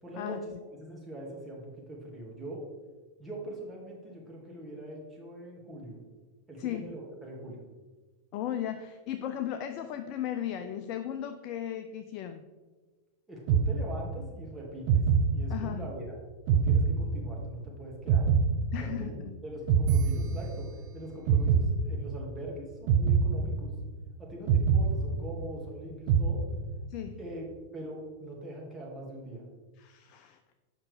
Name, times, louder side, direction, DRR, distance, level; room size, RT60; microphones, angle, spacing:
voice 1, 0.0-0.4 0.7-2.6 3.2-6.0 6.5-7.6 13.3-15.0 15.3-16.1 16.5-18.3 18.8-23.7 24.2-26.4 27.2-27.5 27.7-29.4, right 1 dB, 10° right, -4 dB, 2.1 m, -42 dB
voice 2, 8.3-12.4 15.5-15.8 18.7-19.2 26.9-27.2 29.8-30.4, left 10 dB, 40° left, 8 dB, 0.4 m, -36 dB
sound 1, 13.5-14.3 14.9-15.9 16.5-17.6 18.1-19.3 19.7-20.9 21.3-22.3 22.9-24.0 24.5-25.7 26.1-26.9, right 5 dB, 45° right, 0.7 m, -25 dB
7.7 x 5.6 x 3.4 m, 1.3 s
figure-of-eight pair, 90°, 0 cm